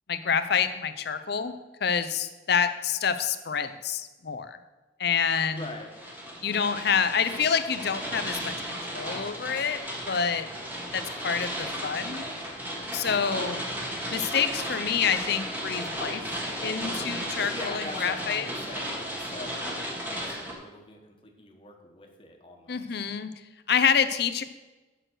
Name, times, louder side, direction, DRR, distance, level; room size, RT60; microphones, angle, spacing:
voice 1, 0.1-1.5 1.8-4.6 5.0-5.6 6.4-9.8 10.1-10.5 10.9-12.3 12.9-13.7 14.1-16.2 16.6-18.5 22.7-23.3 23.7-24.4, left 7 dB, 60° left, 11 dB, 0.6 m, -27 dB
sound 1, 5.3-20.5, equal, 10° right, 1.6 m, -35 dB
voice 2, 5.5-5.9 17.5-23.0, left 2 dB, 30° left, 2 dB, 1.4 m, -43 dB
9.0 x 6.4 x 6.3 m, 1.2 s
head